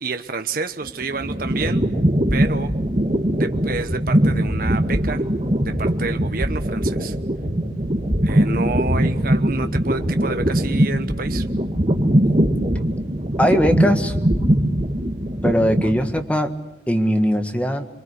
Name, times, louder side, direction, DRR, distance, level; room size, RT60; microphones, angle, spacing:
voice 1, 0.0-1.9 2.3-2.7 3.4-5.2 5.6-7.2 8.2-11.5, right 4 dB, 50° right, 7 dB, 1.0 m, -29 dB
sound 1, 0.8-16.3, right 1 dB, 35° right, 1.8 m, -21 dB
voice 2, 13.4-14.1 15.4-16.5 16.9-17.9, equal, 10° left, 6 dB, 1.6 m, -20 dB
27.0 x 23.5 x 8.2 m, 0.91 s
head